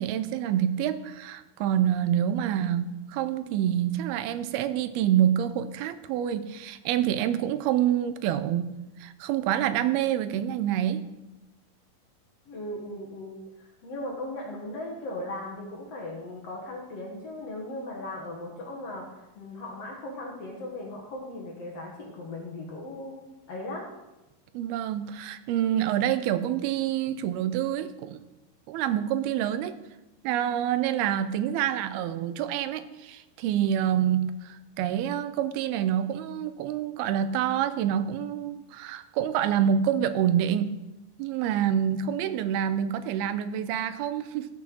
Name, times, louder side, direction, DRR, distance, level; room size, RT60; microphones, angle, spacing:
voice 1, 0.0-8.7 9.0-11.1 24.5-28.2 28.7-29.7 30.2-40.7 41.2-44.5, right 10 dB, 85° right, 12 dB, 2.5 m, -27 dB
voice 2, 12.5-23.1 23.5-23.9, left 1 dB, 55° left, -1 dB, 2.0 m, -38 dB
14.0 x 6.3 x 6.3 m, 1.0 s
omnidirectional pair, 4.5 m